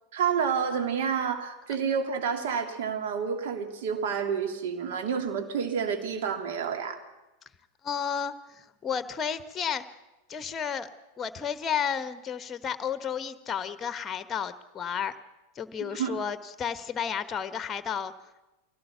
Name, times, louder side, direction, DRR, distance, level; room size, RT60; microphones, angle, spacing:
voice 1, 0.1-7.0 15.8-16.2, right 7 dB, 55° right, 5 dB, 3.0 m, -29 dB
voice 2, 7.8-9.8 10.3-10.9 11.2-15.2 15.5-18.1, left 7 dB, 20° left, 12 dB, 1.2 m, -32 dB
23.5 x 17.0 x 7.0 m, 1.0 s
figure-of-eight pair, 90°, 0 cm